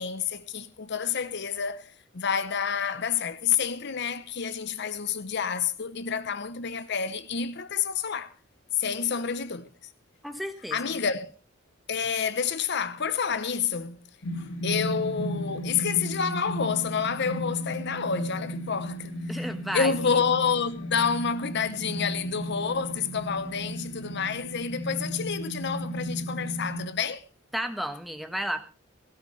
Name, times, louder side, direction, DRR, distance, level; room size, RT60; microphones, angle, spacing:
voice 1, 0.0-8.3 8.7-9.7 10.7-11.3 11.9-14.1 14.4-19.4 19.7-27.2, left 6 dB, 55° left, 0.8 m, -29 dB
voice 2, 10.2-11.1 19.3-20.2 27.5-28.6, equal, ahead, 1.3 m, -33 dB
sound 1, 14.2-26.9, equal, 85° left, 2.4 m, -35 dB
16.5 x 16.5 x 3.3 m
head